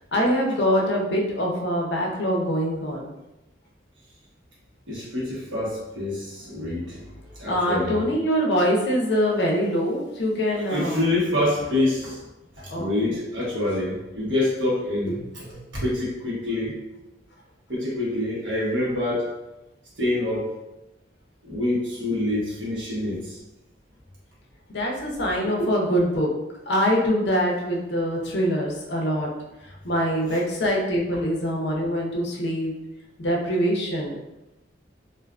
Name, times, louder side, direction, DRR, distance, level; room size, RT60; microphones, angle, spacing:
voice 1, 0.1-3.1 7.5-11.0 12.7-12.9 24.7-26.3 26.7-29.3 29.8-32.7 33.2-34.2, equal, 65° left, -1 dB, 0.5 m, -24 dB
voice 2, 4.9-8.1 10.6-12.2 12.6-16.8 17.7-19.3 20.0-20.5 21.4-23.4 30.3-30.4 31.1-31.2, left 1 dB, 85° right, -6 dB, 1.0 m, -26 dB
2.5 x 2.3 x 2.3 m, 0.97 s
head